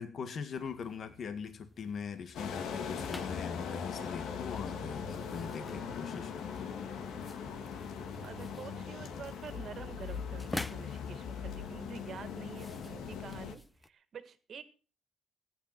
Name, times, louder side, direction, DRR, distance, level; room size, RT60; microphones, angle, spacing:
voice 1, 0.0-6.6, left 6 dB, 55° left, 9 dB, 1.8 m, -41 dB
sound 1, 0.6-13.9, left 1 dB, 10° left, 0.8 m, -50 dB
sound 2, 2.3-13.6, left 6 dB, 80° left, 2.0 m, -40 dB
voice 2, 8.2-14.6, right 7 dB, 55° right, 11 dB, 1.9 m, -48 dB
15.5 x 10.0 x 6.0 m, 0.39 s
cardioid pair, 90°, 0 cm